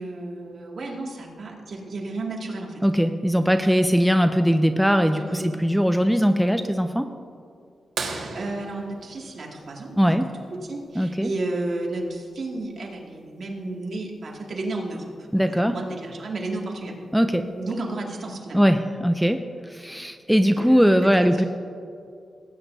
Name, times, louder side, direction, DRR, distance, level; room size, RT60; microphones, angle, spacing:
voice 1, 0.0-2.8 5.2-5.4 8.0-10.2 10.5-15.0 15.3-16.9 17.5-18.7 20.3-20.8, right 2 dB, 60° right, -1 dB, 2.2 m, -32 dB
voice 2, 2.8-7.1 10.0-10.3 11.0-11.3 15.3-15.8 17.1-17.5 18.5-21.4, equal, ahead, 7 dB, 0.5 m, -20 dB
sound 1, 8.0-10.4 12.3-12.4 14.7-14.8 16.5-16.7 17.5-17.6, right 4 dB, 90° right, 1.5 m, -35 dB
18.5 x 9.8 x 2.7 m, 2.4 s
cardioid pair, 95°, 0 cm